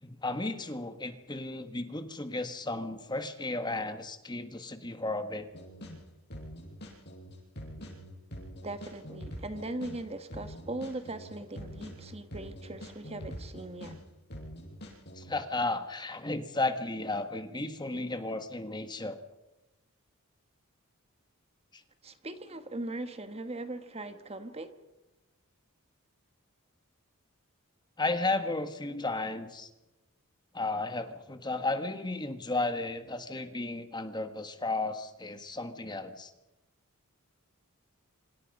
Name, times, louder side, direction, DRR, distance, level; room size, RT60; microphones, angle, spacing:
voice 1, 0.0-5.5 15.1-19.2 21.7-21.8 28.0-29.7 30.5-36.3, left 2 dB, 20° left, 1.6 m, -34 dB
sound 1, 5.5-6.0 6.3-10.0 10.3-14.0 14.3-15.3, equal, 50° left, 7.8 m, -44 dB
voice 2, 8.6-14.0 22.0-24.8, right 2 dB, 30° right, 1.4 m, -39 dB
27.0 x 26.5 x 5.5 m
head